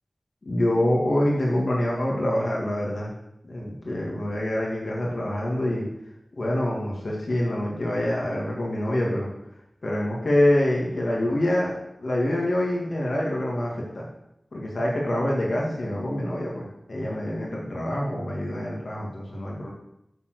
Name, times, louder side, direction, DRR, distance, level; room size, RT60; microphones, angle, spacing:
voice 1, 0.4-3.1 3.4-5.9 6.4-9.3 9.8-14.1 14.5-19.7, left 1 dB, 70° left, -3 dB, 2.6 m, -26 dB
11.0 x 4.8 x 6.6 m, 0.83 s
cardioid pair, 45°, 0 cm